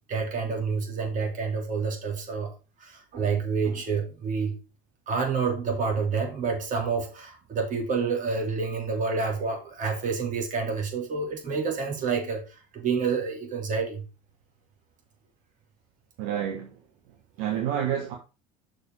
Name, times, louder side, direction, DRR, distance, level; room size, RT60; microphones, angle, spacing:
voice 1, 0.1-2.5 2.8-4.6 5.1-14.0, right 5 dB, 45° right, 3.5 m, -28 dB
voice 2, 16.2-18.2, right 9 dB, 70° right, 1.4 m, -30 dB
6.3 x 5.2 x 4.9 m
hypercardioid pair, 80°, 19 cm